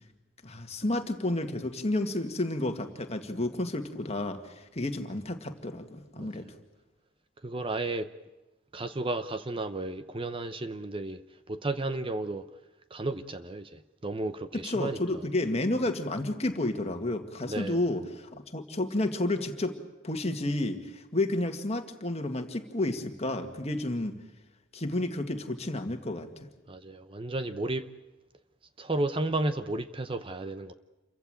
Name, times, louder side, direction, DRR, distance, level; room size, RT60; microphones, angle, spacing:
voice 1, 0.4-6.5 14.6-24.1 24.7-26.3, left 1 dB, 30° left, 2.0 m, -31 dB
voice 2, 7.4-8.1 8.7-11.2 11.5-12.4 12.9-15.0 17.4-17.8 26.7-27.8 28.8-30.7, right 2 dB, 25° right, 0.7 m, -33 dB
28.0 x 15.5 x 9.1 m
head